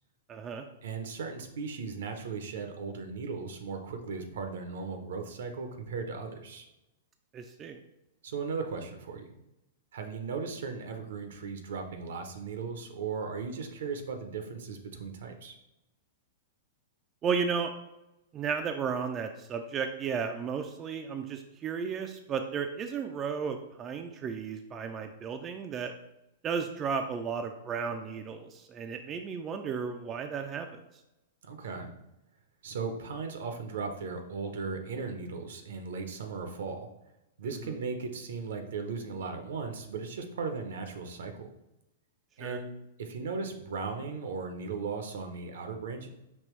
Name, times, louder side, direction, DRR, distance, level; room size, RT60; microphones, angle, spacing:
voice 1, 0.3-0.6 7.3-7.8 17.2-17.7 18.3-25.9 26.4-30.8 42.4-42.6, right 6 dB, 25° right, 5 dB, 0.4 m, -34 dB
voice 2, 0.8-6.7 8.2-9.3 9.9-15.6 31.4-31.9 32.6-36.9 37.4-41.5 42.4-42.7 43.0-46.1, right 4 dB, 70° right, 5 dB, 0.7 m, -37 dB
5.4 x 2.9 x 3.1 m, 0.92 s
hypercardioid pair, 115°, 0 cm